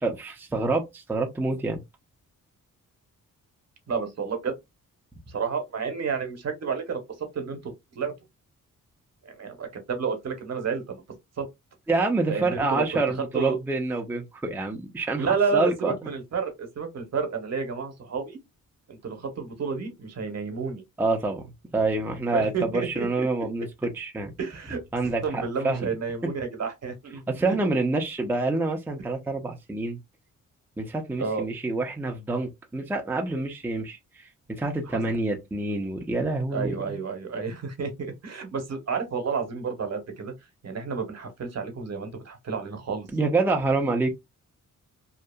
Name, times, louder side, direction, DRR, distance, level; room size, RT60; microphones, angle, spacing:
voice 1, 0.0-1.8 11.9-15.9 21.0-21.5 21.7-24.3 24.9-25.9 27.3-30.0 30.8-37.0 43.1-44.1, right 3 dB, 5° right, 0.4 m, -27 dB
voice 2, 3.9-4.5 5.3-8.1 9.2-11.0 11.4-11.5 12.3-13.0 13.3-13.6 15.2-18.4 18.9-20.8 22.3-23.3 24.4-24.8 25.2-27.7 31.2-31.4 34.9-35.0 36.5-40.3 40.6-43.1, right 5 dB, 50° right, 0.9 m, -30 dB
2.8 x 2.3 x 2.2 m
cardioid pair, 105°, 34 cm